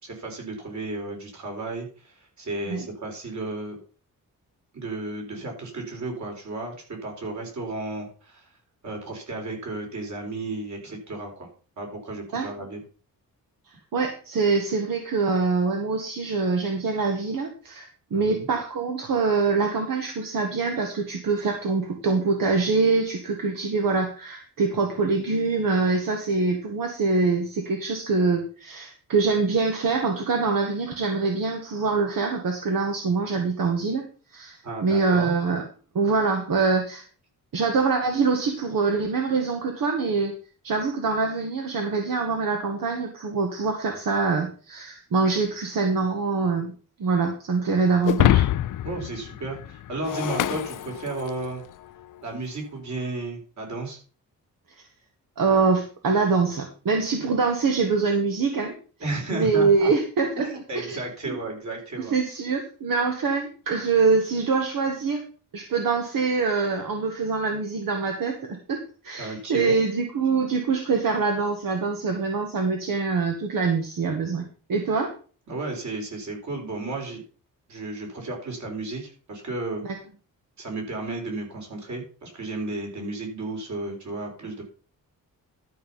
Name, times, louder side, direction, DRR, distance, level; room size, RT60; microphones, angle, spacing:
voice 1, 0.0-3.8 4.7-8.5 8.8-11.5 11.8-12.8 18.1-18.4 34.6-35.3 48.8-51.6 52.2-54.0 59.0-59.9 60.4-62.1 69.2-69.8 75.5-77.2 77.7-79.8 80.6-84.6, right 2 dB, 55° right, 1 dB, 4.2 m, -33 dB
voice 2, 13.9-35.6 36.0-37.0 37.5-40.3 40.6-46.7 47.0-48.4 55.4-58.8 59.3-60.5 60.8-61.0 61.3-61.4 62.0-65.2 65.5-74.4 74.7-75.1 79.8-80.0, right 4 dB, 75° right, 3 dB, 1.8 m, -24 dB
Shatter, 48.1-51.5, left 13 dB, 65° left, 0.5 m, -25 dB
12.5 x 5.6 x 5.6 m, 0.38 s
wide cardioid pair, 140°, 34 cm